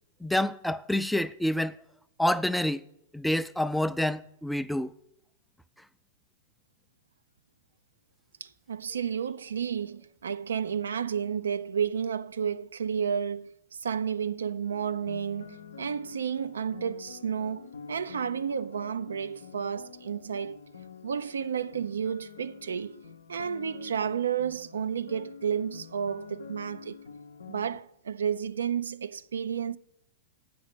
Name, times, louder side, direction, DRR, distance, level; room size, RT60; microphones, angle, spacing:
voice 1, 0.2-1.8 2.2-2.8 3.1-4.9, left 1 dB, ahead, 0.3 m, -27 dB
voice 2, 8.4-13.5 13.8-20.6 21.0-23.0 23.3-27.0 27.5-29.8, right 7 dB, 75° right, 0.3 m, -31 dB
sound 1, 14.7-27.8, left 6 dB, 75° left, 0.6 m, -47 dB
8.5 x 5.3 x 6.7 m
hypercardioid pair, 105°, 0 cm